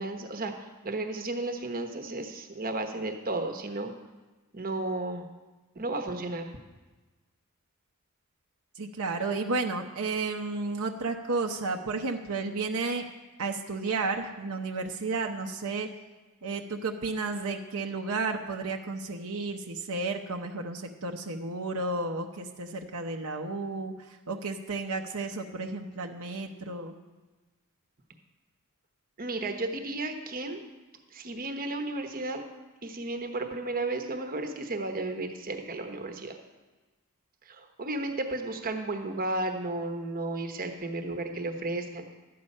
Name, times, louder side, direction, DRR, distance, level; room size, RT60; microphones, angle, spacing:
voice 1, 0.0-3.9 4.5-5.3 5.7-6.5 29.2-30.6 31.1-32.4 32.8-36.4 37.4-42.1, right 2 dB, 40° right, 5 dB, 1.1 m, -33 dB
voice 2, 8.8-13.0 13.4-15.9 16.4-26.9, right 3 dB, 70° right, 2 dB, 0.8 m, -32 dB
12.5 x 8.5 x 5.4 m, 1.2 s
head